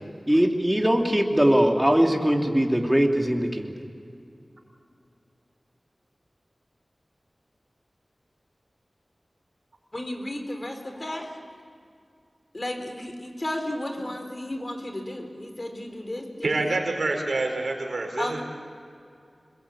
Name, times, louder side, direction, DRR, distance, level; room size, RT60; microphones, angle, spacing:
voice 1, 0.3-3.7, equal, 10° right, 2 dB, 3.0 m, -21 dB
voice 2, 9.9-11.5 12.5-16.6 18.2-18.4, left 1 dB, 40° left, 5 dB, 4.0 m, -33 dB
voice 3, 16.4-18.4, right 2 dB, 85° right, 3 dB, 4.3 m, -27 dB
27.0 x 21.5 x 8.6 m, 2.5 s
wide cardioid pair, 55°, 0 cm